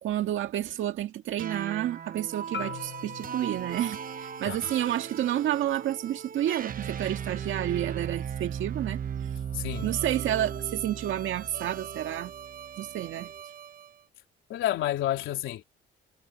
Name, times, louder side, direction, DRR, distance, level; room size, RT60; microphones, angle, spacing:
voice 1, 0.0-9.0 9.8-12.3 12.8-13.3, right 12 dB, 80° right, 1.9 m, -30 dB
sound 1, 1.4-13.9, right 8 dB, 45° right, 1.1 m, -37 dB
Marimba xylophone, 2.5-6.7, left 8 dB, 65° left, 1.9 m, -45 dB
voice 2, 9.5-9.9 14.5-15.6, left 13 dB, 85° left, 3.5 m, -30 dB
cardioid pair, 90°, 20 cm